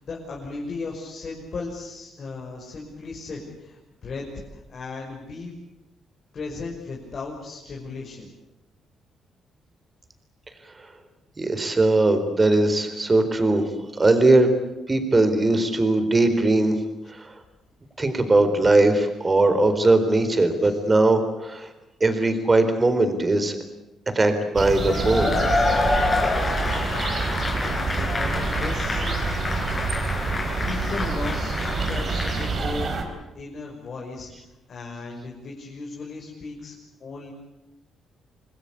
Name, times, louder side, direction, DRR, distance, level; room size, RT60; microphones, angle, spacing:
voice 1, 0.0-5.6 6.3-8.3 20.6-20.8 27.5-29.1 30.6-31.6 31.9-32.9 33.3-34.3 34.7-36.7 37.0-37.3, left 3 dB, 50° left, -3 dB, 6.2 m, -36 dB
voice 2, 11.4-14.5 14.9-16.8 17.1-17.3 18.0-21.7 22.0-23.6 24.1-25.3, right 2 dB, 25° right, 9 dB, 4.3 m, -20 dB
sound 1, 24.5-33.0, right 4 dB, 50° right, 4.6 m, -27 dB
Cheering / Applause / Crowd, 24.8-32.5, left 2 dB, 30° left, 5.6 m, -27 dB
27.0 x 20.0 x 8.5 m, 0.93 s
cardioid pair, 90°, 0 cm